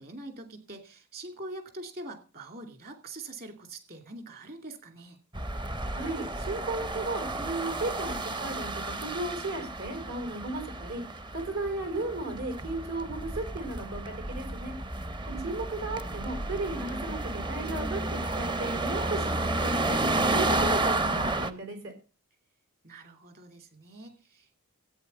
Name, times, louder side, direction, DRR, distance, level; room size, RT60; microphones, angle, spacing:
voice 1, 0.0-5.2 15.3-15.6 22.8-24.6, right 2 dB, 45° right, 7 dB, 2.6 m, -44 dB
sound 1, 5.3-21.5, right 2 dB, 20° right, 0.7 m, -32 dB
voice 2, 5.9-11.0 11.3-14.7 15.4-20.0 20.3-21.9, right 2 dB, 75° right, 5 dB, 4.8 m, -35 dB
13.5 x 8.8 x 5.5 m, 0.35 s
head